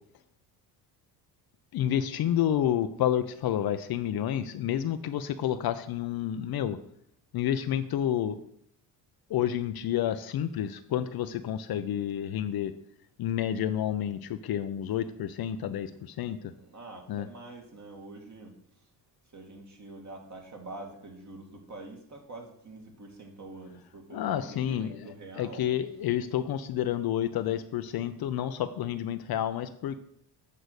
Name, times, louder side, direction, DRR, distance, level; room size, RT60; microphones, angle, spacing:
voice 1, 1.7-6.8 7.3-8.4 9.3-12.7 13.2-16.4 17.1-17.3 24.1-25.1 25.4-30.0, left 10 dB, 50° left, 10 dB, 0.7 m, -29 dB
voice 2, 16.5-18.9 19.3-25.7, right 2 dB, 35° right, 2 dB, 2.2 m, -46 dB
8.2 x 3.9 x 6.5 m, 0.69 s
hypercardioid pair, 65°, 48 cm